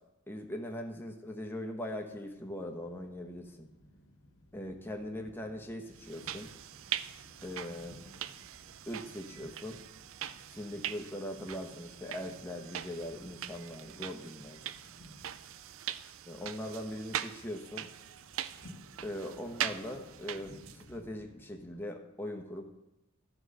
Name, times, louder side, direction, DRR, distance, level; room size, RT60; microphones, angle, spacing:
voice 1, 0.3-3.7 4.5-6.5 7.4-8.0 8.9-9.8 10.5-14.6 16.3-17.9 19.0-22.6, left 1 dB, 10° left, 2 dB, 1.0 m, -41 dB
sound 1, 2.1-21.9, left 1 dB, 80° left, 1.5 m, -58 dB
sound 2, 5.9-20.9, right 11 dB, 65° right, 0.4 m, -42 dB
12.0 x 4.9 x 6.6 m, 0.92 s
head